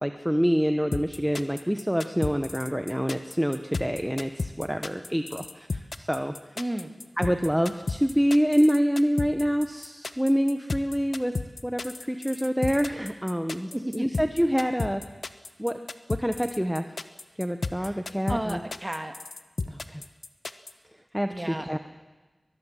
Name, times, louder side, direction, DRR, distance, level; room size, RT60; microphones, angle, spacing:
voice 1, 0.0-6.3 7.2-11.4 11.6-15.0 15.6-15.8 16.1-16.9 17.4-18.6 19.7-20.0 21.1-21.8, equal, 5° right, 7 dB, 1.0 m, -26 dB
sound 1, 0.9-20.7, left 3 dB, 70° left, 1.0 m, -33 dB
voice 2, 6.6-6.9 13.7-14.2 17.8-18.0 18.3-19.2 21.3-21.8, right 1 dB, 20° right, 6 dB, 2.1 m, -33 dB
23.5 x 20.5 x 7.5 m, 1.2 s
wide cardioid pair, 75°, 0 cm